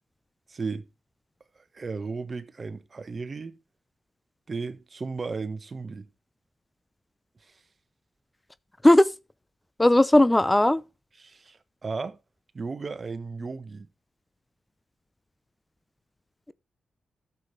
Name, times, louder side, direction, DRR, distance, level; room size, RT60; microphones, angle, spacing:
voice 1, 0.5-0.8 1.7-3.5 4.5-6.1 11.2-12.2 12.5-13.9, right 4 dB, 45° right, 1.2 m, -35 dB
voice 2, 9.8-10.8, left 1 dB, 15° left, 0.7 m, -17 dB
13.0 x 7.2 x 3.2 m
hypercardioid pair, 40°, 0 cm